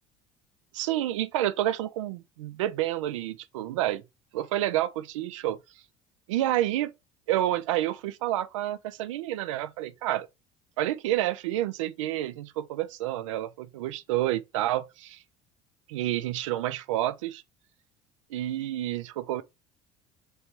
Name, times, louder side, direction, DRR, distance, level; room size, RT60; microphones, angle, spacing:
voice 1, 0.7-4.0 4.3-5.6 6.3-6.9 7.3-10.3 10.8-15.2 15.9-17.4 18.3-19.4, right 14 dB, 75° right, 0.4 m, -29 dB
3.4 x 3.1 x 2.9 m
hypercardioid pair, 65°, 16 cm